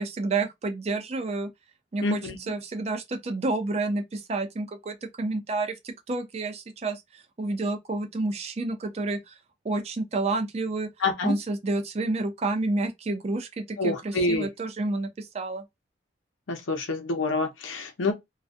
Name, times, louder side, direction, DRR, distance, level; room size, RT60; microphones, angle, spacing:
voice 1, 0.0-1.5 1.9-2.2 2.5-9.4 9.6-10.9 11.2-15.6, right 2 dB, 30° right, 0.4 m, -29 dB
voice 2, 2.0-2.4 11.0-11.4 13.8-14.5 16.5-18.1, left 2 dB, 85° left, 0.7 m, -27 dB
2.4 x 2.3 x 2.4 m
head